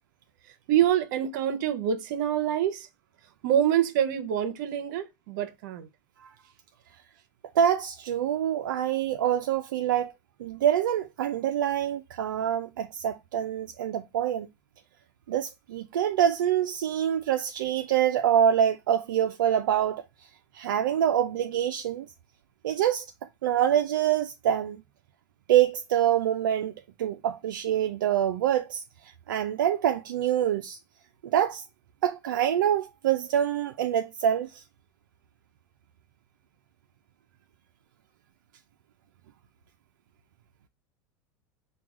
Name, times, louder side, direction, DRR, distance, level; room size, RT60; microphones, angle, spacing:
voice 1, 0.7-2.9 3.4-5.9, right 10 dB, 70° right, 0.8 m, -26 dB
voice 2, 7.6-10.1 10.4-14.5 15.3-20.0 20.5-22.1 22.6-23.1 23.4-24.8 25.5-26.7 27.0-28.8 29.3-30.8 31.2-31.6 32.0-34.6, right 10 dB, 90° right, 0.4 m, -25 dB
4.6 x 2.3 x 3.6 m
supercardioid pair, 110°, 10 cm